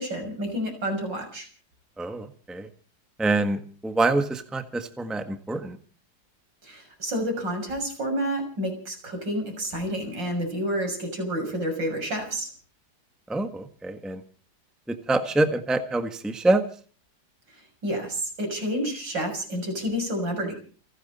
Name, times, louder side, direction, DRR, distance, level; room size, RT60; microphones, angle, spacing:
voice 1, 0.0-1.5 6.6-12.5 17.8-20.5, equal, 75° right, 4 dB, 7.3 m, -29 dB
voice 2, 2.0-2.7 3.2-5.8 13.3-14.2 14.9-16.6, right 2 dB, ahead, 8 dB, 1.4 m, -26 dB
29.0 x 11.5 x 4.2 m, 0.42 s
omnidirectional pair, 2.0 m